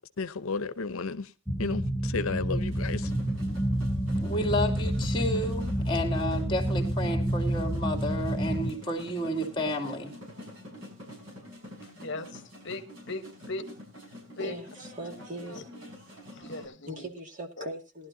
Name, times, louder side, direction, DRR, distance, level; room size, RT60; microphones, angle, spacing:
voice 1, 0.2-1.3 1.6-3.1, left 4 dB, 75° left, 0.7 m, -33 dB
sound 1, 1.5-8.7, equal, ahead, 0.9 m, -29 dB
sound 2, 2.7-16.7, left 1 dB, 70° right, 5.6 m, -46 dB
voice 2, 4.2-10.2, equal, 20° left, 2.5 m, -31 dB
voice 3, 11.8-13.2 13.5-13.6 14.4-14.5 15.5-15.6 16.3-17.0 17.6-17.7, left 2 dB, 55° left, 1.1 m, -38 dB
voice 4, 14.4-15.7 16.9-18.1, right 1 dB, 35° right, 2.3 m, -40 dB
19.0 x 11.5 x 2.7 m
head